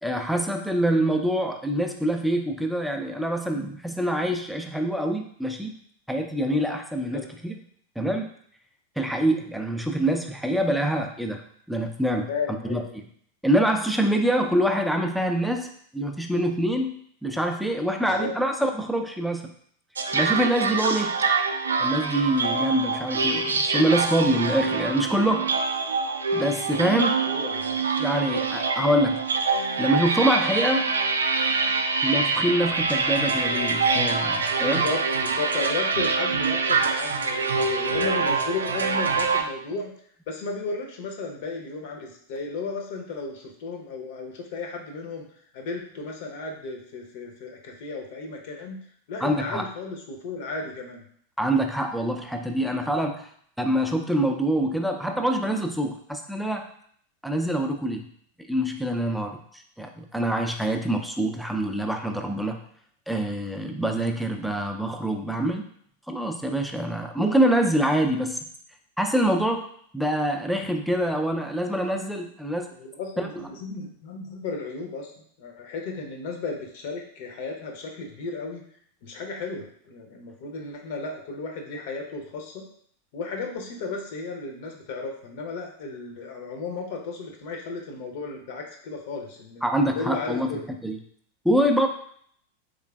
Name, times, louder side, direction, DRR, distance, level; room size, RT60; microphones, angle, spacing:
voice 1, 0.0-5.7 6.1-7.6 8.0-8.3 9.0-12.3 12.7-13.1 13.4-19.5 20.1-21.2 21.8-25.5 26.3-27.2 28.0-29.2 29.8-30.9 32.0-34.8 49.2-49.6 51.4-53.3 53.6-56.7 57.2-58.1 58.5-62.6 63.1-65.6 66.1-68.4 69.0-69.7 69.9-72.7 73.2-73.5 89.6-90.5 90.8-91.0 91.4-91.9, right 1 dB, ahead, 4 dB, 0.4 m, -25 dB
voice 2, 12.3-13.0 18.2-18.3 27.0-27.8 34.6-39.9 40.3-45.3 45.5-51.0 72.8-75.1 75.4-78.6 79.0-82.7 83.1-89.6 89.9-90.7, left 3 dB, 50° left, 1 dB, 0.6 m, -34 dB
sound 1, 20.0-39.4, right 4 dB, 70° right, 0.3 m, -25 dB
3.7 x 3.2 x 2.3 m, 0.63 s
figure-of-eight pair, 90°, 0 cm